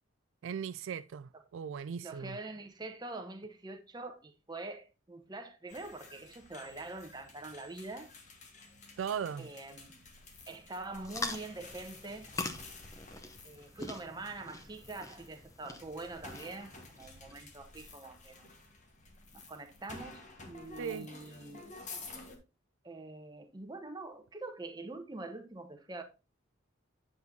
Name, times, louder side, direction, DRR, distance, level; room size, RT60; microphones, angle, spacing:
voice 1, 0.4-2.4 9.0-9.5 20.8-21.1, right 7 dB, 75° right, 0.3 m, -38 dB
voice 2, 2.0-8.1 9.4-10.0 10.5-12.3 13.4-18.5 19.3-21.6 22.8-26.0, right 2 dB, 20° right, 0.9 m, -44 dB
sound 1, 5.7-22.4, left 3 dB, 35° left, 1.4 m, -52 dB
sound 2, 11.0-17.3, left 3 dB, 15° left, 0.7 m, -44 dB
9.5 x 6.0 x 2.7 m
head